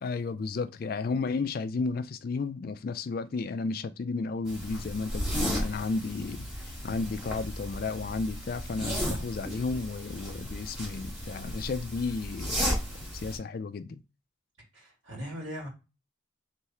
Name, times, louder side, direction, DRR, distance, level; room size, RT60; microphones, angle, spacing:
voice 1, 0.0-12.6 13.1-14.0, left 4 dB, 45° left, 0.3 m, -33 dB
sound 1, 4.5-13.4, equal, ahead, 1.7 m, -34 dB
voice 2, 14.7-15.7, equal, 70° right, 2.6 m, -39 dB
3.5 x 3.3 x 4.3 m
head